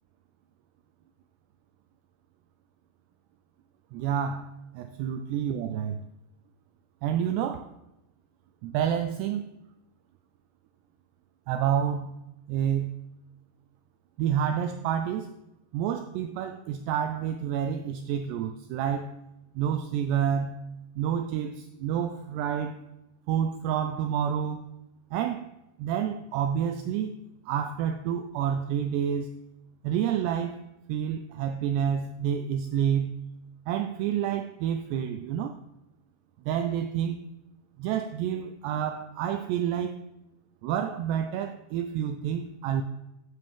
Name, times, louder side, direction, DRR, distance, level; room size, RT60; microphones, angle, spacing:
voice 1, 3.9-6.0 7.0-7.7 8.6-9.5 11.5-12.1 12.5-13.0 14.2-15.3 15.7-19.2 19.6-20.6 21.0-22.8 23.3-24.7 25.1-25.5 25.8-27.1 27.5-29.3 29.8-30.6 30.9-33.2 33.7-35.6 36.5-37.2 37.8-40.0 40.6-42.8, right 9 dB, 85° right, 2.4 m, -29 dB
14.0 x 10.5 x 3.6 m
omnidirectional pair, 5.5 m